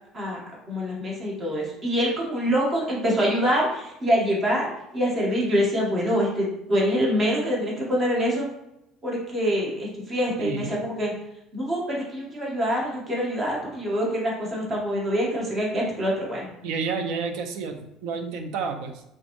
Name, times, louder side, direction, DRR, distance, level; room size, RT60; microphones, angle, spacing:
voice 1, 0.7-8.5 9.0-11.1 11.5-16.5, equal, 20° right, -3 dB, 0.9 m, -25 dB
voice 2, 10.4-10.7 16.6-19.0, right 5 dB, 65° right, 6 dB, 0.4 m, -30 dB
3.4 x 2.9 x 2.5 m, 0.85 s
cardioid pair, 170°, 0 cm